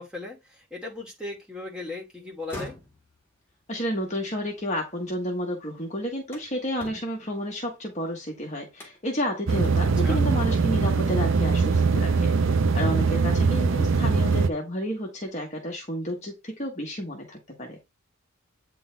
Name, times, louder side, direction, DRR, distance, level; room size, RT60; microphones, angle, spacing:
voice 1, 0.0-2.8 10.0-10.2, left 2 dB, 5° right, 2.5 m, -37 dB
sound 1, 2.3-5.4 5.8-8.2 8.7-9.2 9.6-9.8 10.3-10.8 12.0-12.2 12.8-13.9 14.2-14.8, left 1 dB, 10° left, 2.0 m, -46 dB
voice 2, 3.7-12.3 12.7-17.8, equal, 35° left, 1.5 m, -31 dB
sound 2, 9.5-14.5, right 4 dB, 65° right, 0.6 m, -22 dB
8.7 x 3.7 x 3.4 m
head